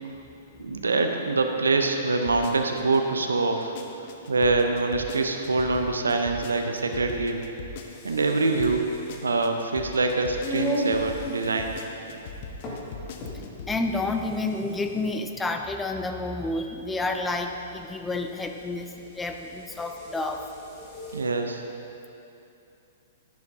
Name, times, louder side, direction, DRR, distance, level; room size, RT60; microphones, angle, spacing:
voice 1, 0.6-3.8 4.3-7.4 8.0-8.9 9.2-11.8 21.1-21.6, right 3 dB, 80° right, 5 dB, 0.7 m, -24 dB
sound 1, 2.2-3.0 3.4-8.3 8.6-13.8 14.1-14.2, left 5 dB, 50° left, 0.8 m, -40 dB
sound 2, 7.8-21.3, equal, 35° left, 2.1 m, -38 dB
voice 2, 13.3-20.5, left 2 dB, 10° left, 5 dB, 0.6 m, -30 dB
11.0 x 11.0 x 2.8 m, 2.7 s
figure-of-eight pair, 110°, 0 cm